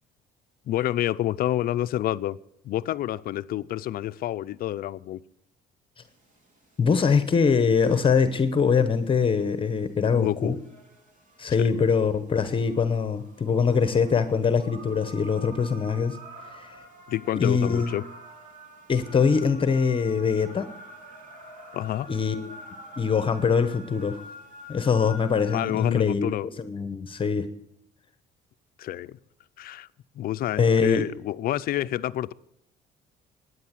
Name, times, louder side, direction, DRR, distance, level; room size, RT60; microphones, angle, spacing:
voice 1, 0.7-2.4 2.6-5.2 10.1-10.6 11.6-11.7 17.1-18.0 21.7-22.1 25.5-26.5 28.8-29.2 29.6-29.9 30.2-32.3, left 13 dB, 60° left, 0.5 m, -28 dB
sound 1, 6.0-26.0, equal, 50° right, 3.4 m, -47 dB
voice 2, 6.8-10.5 11.4-16.2 16.5-16.8 17.3-17.9 18.9-20.7 22.1-22.5 23.0-24.2 24.7-27.5 30.6-31.0, left 5 dB, 30° left, 1.0 m, -23 dB
14.5 x 9.7 x 7.5 m
cardioid pair, 110°, 17 cm